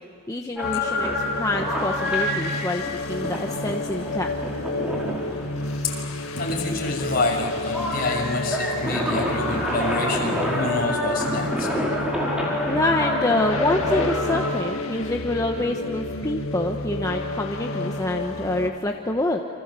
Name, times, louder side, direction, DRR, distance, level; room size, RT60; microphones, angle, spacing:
voice 1, 0.3-4.3 12.7-19.4, left 2 dB, 15° left, 2 dB, 1.2 m, -26 dB
sound 1, 0.6-18.7, left 2 dB, 85° left, 2.2 m, -31 dB
sound 2, 0.6-14.5, left 1 dB, 5° right, 5.3 m, -28 dB
voice 2, 6.4-11.7, left 2 dB, 45° left, 0 dB, 6.4 m, -27 dB
29.0 x 27.0 x 7.7 m, 3.0 s
head